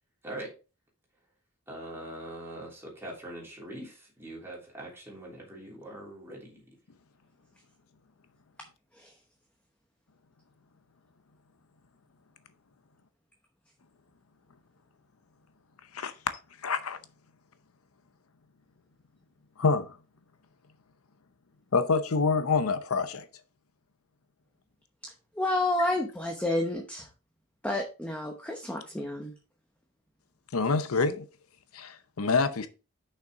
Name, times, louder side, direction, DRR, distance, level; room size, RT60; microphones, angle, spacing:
voice 1, 1.7-6.6, right 1 dB, 10° right, 3.2 m, -42 dB
voice 2, 16.6-17.0 19.6-20.0 21.7-23.3 30.5-31.3 31.7-32.7, left 4 dB, 90° left, 0.7 m, -26 dB
voice 3, 25.0-27.1 27.6-29.3, left 1 dB, 5° left, 0.9 m, -30 dB
6.6 x 5.8 x 3.6 m
head